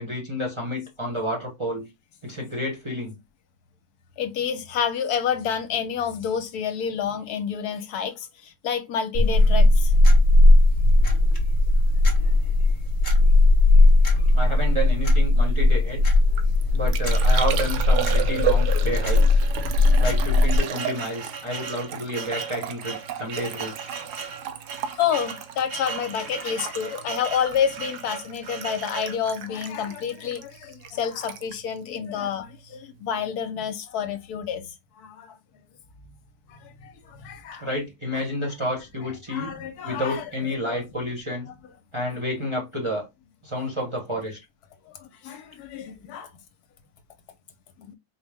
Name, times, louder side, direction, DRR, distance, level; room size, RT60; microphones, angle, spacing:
voice 1, 0.0-1.9 2.2-3.2 14.3-16.0 16.7-19.4 20.0-23.7 37.6-39.5 39.8-41.5 41.9-43.1 43.4-44.4, equal, 25° right, 0.8 m, -30 dB
voice 2, 4.2-9.9 24.9-35.3 36.5-37.7 38.1-38.2 39.3-40.2 40.6-40.8 44.9-46.3 47.8-47.9, left 8 dB, 75° left, 1.1 m, -29 dB
sound 1, 9.1-20.6, left 2 dB, 35° left, 0.9 m, -18 dB
Liquid, 16.1-32.8 33.0-33.6, right 10 dB, 80° right, 1.1 m, -34 dB
sound 2, 17.1-18.0 18.7-18.8 19.1-19.2 19.9-29.2, right 5 dB, 50° right, 0.9 m, -37 dB
4.4 x 2.0 x 3.4 m
omnidirectional pair, 1.7 m